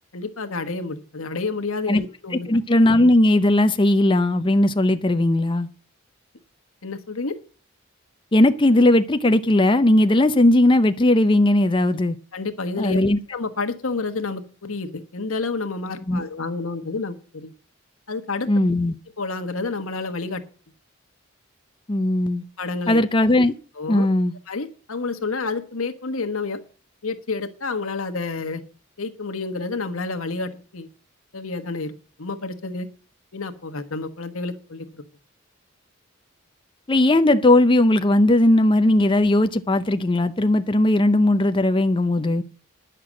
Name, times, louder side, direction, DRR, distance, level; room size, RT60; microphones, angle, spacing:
voice 1, 0.1-2.5 6.8-7.4 12.3-13.0 13.3-17.5 18.1-18.5 19.2-20.4 22.6-23.0 23.8-24.1 24.5-26.6 27.0-28.6 29.0-30.9 31.3-32.9 33.3-35.0, left 3 dB, 90° left, 1.3 m, -29 dB
voice 2, 2.5-5.7 8.3-12.2 12.8-13.2 16.1-16.2 18.5-19.0 21.9-22.4 22.9-23.5 23.9-24.3 36.9-42.4, left 1 dB, 25° left, 0.5 m, -18 dB
10.5 x 6.7 x 7.5 m
head